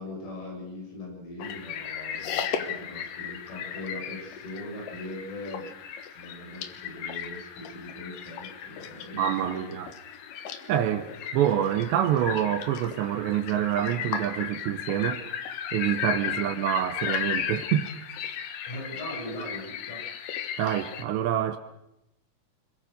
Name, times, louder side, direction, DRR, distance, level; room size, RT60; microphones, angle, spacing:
voice 1, 0.0-5.7 6.2-9.8 10.9-11.0 18.6-20.1, left 1 dB, 90° left, 10.0 m, -40 dB
sound 1, 1.4-21.0, left 8 dB, 70° left, 2.1 m, -35 dB
voice 2, 9.1-9.9 10.7-11.0 11.3-15.3 15.7-17.9 20.6-21.6, right 10 dB, 75° right, 2.8 m, -26 dB
26.5 x 23.0 x 6.6 m
omnidirectional pair, 6.0 m